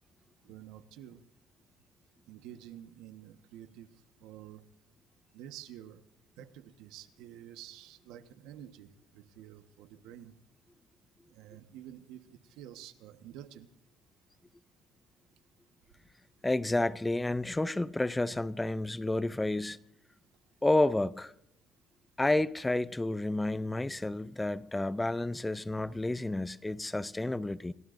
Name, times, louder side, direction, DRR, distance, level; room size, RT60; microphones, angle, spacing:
voice 1, 0.4-1.2 2.3-3.9 4.2-4.6 5.3-6.0 6.4-10.3 11.3-13.7, right 11 dB, 80° right, 1.3 m, -49 dB
voice 2, 16.4-19.8 20.6-21.3 22.2-27.7, left 2 dB, 10° left, 0.6 m, -30 dB
28.0 x 18.5 x 2.6 m
cardioid pair, 110°, 0 cm